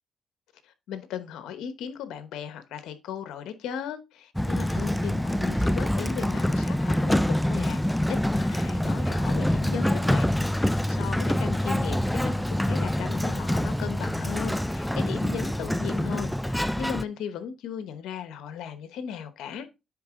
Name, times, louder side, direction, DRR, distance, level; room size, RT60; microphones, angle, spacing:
voice 1, 0.6-7.8 8.1-19.7, left 8 dB, 85° left, 0.9 m, -37 dB
Sliding door, 4.4-17.0, left 1 dB, 5° left, 0.4 m, -26 dB
9.5 x 3.8 x 3.7 m
cardioid pair, 90°, 0 cm